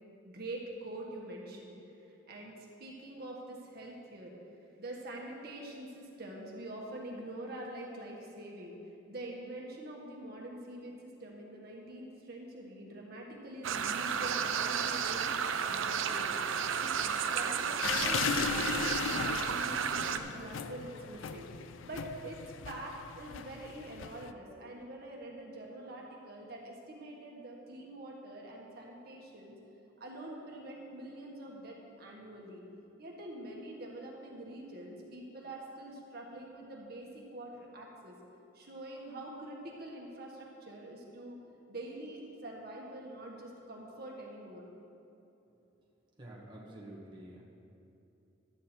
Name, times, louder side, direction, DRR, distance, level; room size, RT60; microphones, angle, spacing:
voice 1, 0.2-1.7 2.3-2.5 2.8-4.3 4.8-8.8 9.1-21.5 21.8-22.4 22.6-29.6 30.0-32.6 33.0-38.2 38.5-41.4 41.7-44.6, right 1 dB, 50° right, -2 dB, 1.5 m, -45 dB
sound 1, 13.6-20.2, right 7 dB, 85° right, 0.5 m, -32 dB
sound 2, 17.8-24.3, left 7 dB, 80° left, 0.4 m, -37 dB
voice 2, 46.2-47.4, right 1 dB, 25° right, -4 dB, 1.2 m, -48 dB
12.0 x 8.6 x 4.4 m, 2.9 s
head